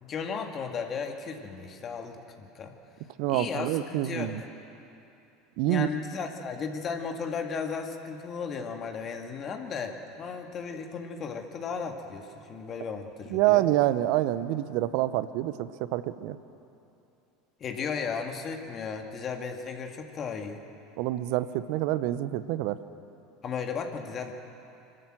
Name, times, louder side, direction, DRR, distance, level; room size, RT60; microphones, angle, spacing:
voice 1, 0.0-2.7 3.3-4.3 5.7-13.7 17.6-20.6 23.4-24.3, left 5 dB, 40° left, 4 dB, 2.0 m, -35 dB
voice 2, 3.2-4.4 5.6-5.9 13.3-16.4 21.0-22.8, right 14 dB, 60° right, 14 dB, 0.8 m, -27 dB
26.0 x 13.0 x 7.8 m, 2.8 s
hypercardioid pair, 75°, 0 cm